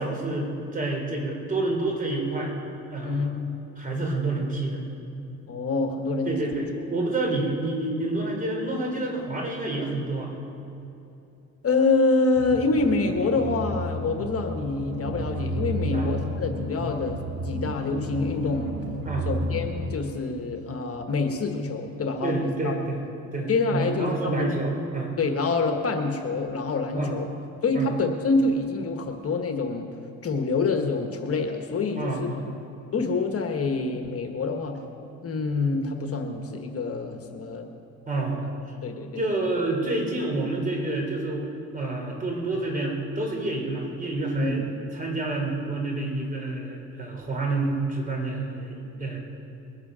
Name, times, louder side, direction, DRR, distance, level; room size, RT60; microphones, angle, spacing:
voice 1, 0.0-2.5 2.9-3.2 3.8-4.8 6.2-10.3 15.9-16.1 19.1-19.3 20.7-20.8 22.2-23.0 23.3-25.1 26.9-27.2 27.7-28.0 31.9-32.6 38.1-38.5 39.2-41.4 41.7-44.6 44.9-49.2, right 2 dB, 25° right, 0 dB, 3.7 m, -28 dB
voice 2, 3.0-3.5 5.5-6.3 11.6-18.7 19.2-22.7 23.5-24.5 25.2-27.3 27.6-29.9 30.2-32.3 32.9-34.8 35.2-37.7 38.4-38.5 38.8-39.2 44.3-44.7, left 3 dB, 50° left, 4 dB, 1.4 m, -26 dB
sound 1, 12.3-20.0, equal, 65° right, 3.2 m, -32 dB
21.5 x 8.2 x 6.3 m, 2.8 s
cardioid pair, 90°, 30 cm